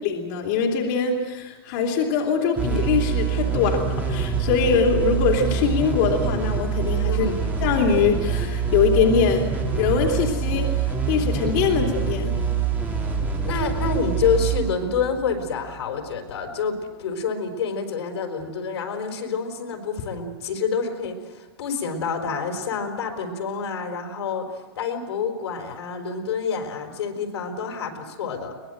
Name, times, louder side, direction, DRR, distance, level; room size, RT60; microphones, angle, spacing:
voice 1, 0.0-7.3 7.6-9.4 9.8-12.3, left 6 dB, 45° left, 0 dB, 3.2 m, -22 dB
sound 1, 2.6-15.9, right 6 dB, 10° right, 3.4 m, -25 dB
voice 2, 7.0-7.6 13.4-28.6, left 5 dB, 80° left, 4 dB, 4.6 m, -28 dB
23.0 x 20.0 x 8.0 m, 1.2 s
supercardioid pair, 160°, 14 cm